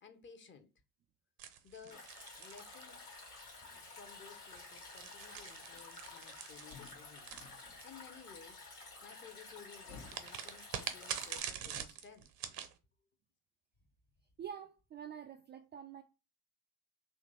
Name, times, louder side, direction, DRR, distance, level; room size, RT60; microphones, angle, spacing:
voice 1, 0.0-0.7 1.6-2.1 2.4-3.1 3.7-8.6 9.0-12.3, left 6 dB, 25° left, 0.7 m, -56 dB
sound 1, 1.4-3.4 4.4-8.1 10.1-12.7, right 9 dB, 50° right, 0.7 m, -45 dB
Stream, 1.9-11.4, left 3 dB, 85° left, 1.4 m, -52 dB
sound 2, 5.6-8.2 9.5-11.3, left 4 dB, 60° left, 0.9 m, -58 dB
voice 2, 14.4-16.0, right 8 dB, 25° right, 0.3 m, -47 dB
2.9 x 2.5 x 3.9 m
figure-of-eight pair, 60°, 44 cm